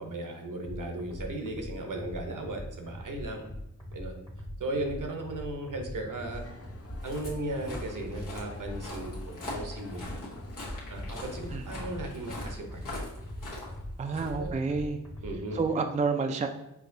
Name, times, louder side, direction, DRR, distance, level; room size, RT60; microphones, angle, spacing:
voice 1, 0.0-3.4 3.9-4.2 4.6-6.4 7.0-10.2 10.9-13.0 14.3-14.5 15.2-15.6, right 1 dB, 70° right, 3 dB, 0.8 m, -36 dB
sound 1, 0.6-15.6, equal, 10° left, 0.9 m, -42 dB
sound 2, 6.3-11.6, left 4 dB, 45° left, 0.6 m, -52 dB
Walk footsteps, 6.7-15.0, left 1 dB, 80° left, 1.2 m, -42 dB
voice 2, 14.0-15.0 15.5-16.5, right 4 dB, 25° right, 5 dB, 0.3 m, -29 dB
4.7 x 2.8 x 2.6 m, 0.83 s
cardioid pair, 45°, 33 cm